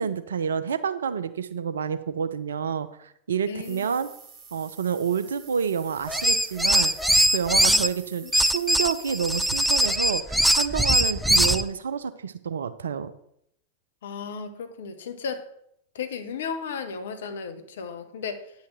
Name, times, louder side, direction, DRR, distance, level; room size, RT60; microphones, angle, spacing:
voice 1, 0.0-4.1 4.5-6.9 7.3-13.1, right 7 dB, 65° right, 0.7 m, -28 dB
voice 2, 3.5-3.8 7.7-7.8 8.2-8.3 14.0-15.5 15.9-18.5, left 6 dB, 60° left, 1.2 m, -34 dB
sound 1, 3.6-9.5, right 6 dB, 30° right, 2.4 m, -48 dB
sound 2, 6.1-7.9 8.3-11.6, right 1 dB, ahead, 0.5 m, -21 dB
9.6 x 5.8 x 5.9 m
figure-of-eight pair, 90°, 0 cm